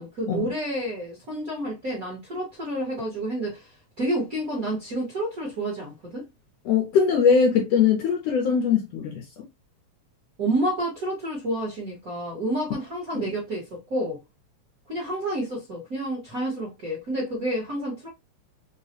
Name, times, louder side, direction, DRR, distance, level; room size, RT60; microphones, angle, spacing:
voice 1, 0.0-6.2 10.4-14.2 14.9-18.1, right 1 dB, 45° right, 1.1 m, -29 dB
voice 2, 6.7-9.4 13.1-13.3, left 6 dB, 70° left, 1.6 m, -21 dB
4.7 x 2.2 x 2.8 m
omnidirectional pair, 3.4 m